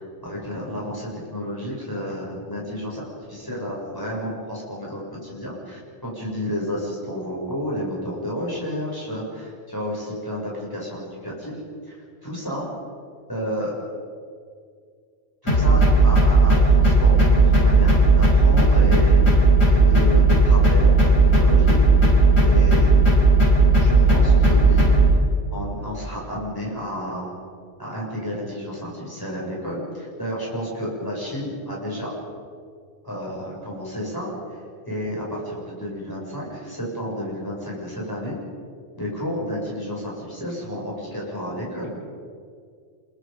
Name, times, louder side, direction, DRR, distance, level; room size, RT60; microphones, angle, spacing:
voice 1, 0.0-11.6 11.9-12.0 12.2-12.7 13.3-13.8 15.4-21.8 22.4-23.0 23.8-25.2 25.5-27.3 27.8-32.1 33.0-34.3 34.9-38.4 39.0-41.9, equal, 15° left, -5 dB, 6.8 m, -31 dB
sound 1, 15.5-25.1, right 2 dB, 80° left, 5.7 m, -15 dB
27.5 x 23.0 x 5.3 m, 2.1 s
omnidirectional pair, 1.3 m